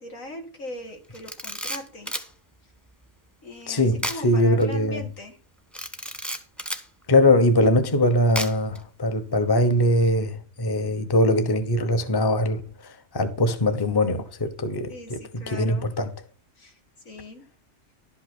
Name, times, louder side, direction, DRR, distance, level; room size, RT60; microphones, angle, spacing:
voice 1, 0.0-2.1 3.4-5.4 14.9-15.9 16.6-16.7 17.0-17.4, left 1 dB, 85° left, 2.6 m, -39 dB
Camera, 1.1-2.3 4.0-4.2 4.6-4.7 5.7-6.9 8.3-8.8, equal, ahead, 1.0 m, -32 dB
voice 2, 3.7-5.1 7.1-16.1, left 1 dB, 20° left, 0.9 m, -22 dB
11.5 x 5.7 x 6.0 m
omnidirectional pair, 1.3 m